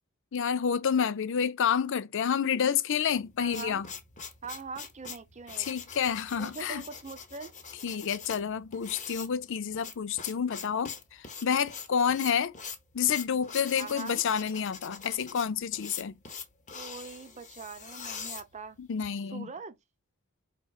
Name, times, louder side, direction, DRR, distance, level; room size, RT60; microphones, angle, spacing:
voice 1, 0.3-3.9 5.6-6.8 7.8-12.5 12.9-16.1 18.8-19.5, left 7 dB, 60° left, 0.5 m, -29 dB
sound 1, 3.1-19.1, left 6 dB, 35° left, 1.0 m, -43 dB
voice 2, 3.4-3.8 4.4-5.8 6.4-7.5 13.8-14.2 16.7-18.8 19.3-19.8, right 4 dB, 35° right, 0.7 m, -42 dB
5.0 x 3.8 x 2.4 m
head